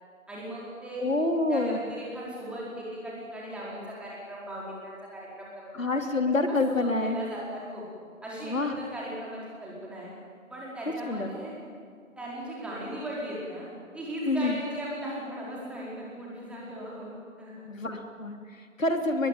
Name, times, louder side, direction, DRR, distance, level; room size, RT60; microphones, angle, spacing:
voice 1, 0.3-1.0 1.5-6.3 6.7-7.8 8.2-10.1 10.5-11.5 12.2-13.7 13.9-17.1 17.4-17.6, right 1 dB, 5° right, -5 dB, 4.6 m, -38 dB
voice 2, 1.0-1.8 5.7-7.2 8.4-8.7 11.1-11.3 14.3-14.5 17.7-19.3, left 2 dB, 70° left, 5 dB, 3.4 m, -27 dB
22.5 x 21.5 x 9.3 m, 2.1 s
figure-of-eight pair, 140°, 40 cm